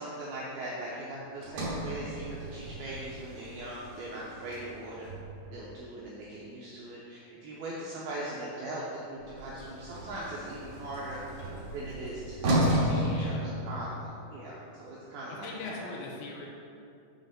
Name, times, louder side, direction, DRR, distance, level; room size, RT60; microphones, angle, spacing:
voice 1, 0.0-5.1 5.5-9.0 9.3-11.2 11.7-15.9, right 1 dB, 85° right, -6 dB, 2.2 m, -40 dB
Sliding door, 1.4-5.7 9.2-14.1, equal, 60° right, 1.9 m, -33 dB
voice 2, 12.9-13.4 15.4-16.5, left 3 dB, 80° left, -2 dB, 2.8 m, -40 dB
7.3 x 5.5 x 5.7 m, 2.6 s
omnidirectional pair, 5.5 m